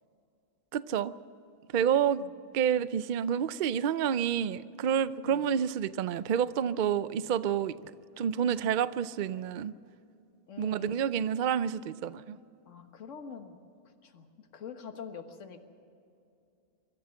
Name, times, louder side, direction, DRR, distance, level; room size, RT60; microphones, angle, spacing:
voice 1, 0.7-1.1 1.7-2.2 2.5-7.8 8.2-9.7 10.6-12.4, right 8 dB, 85° right, 15 dB, 0.4 m, -29 dB
voice 2, 10.5-11.1 12.6-13.6 14.0-14.3 14.5-15.6, left 6 dB, 60° left, 6 dB, 1.7 m, -45 dB
24.0 x 14.0 x 7.7 m, 2.6 s
omnidirectional pair, 1.5 m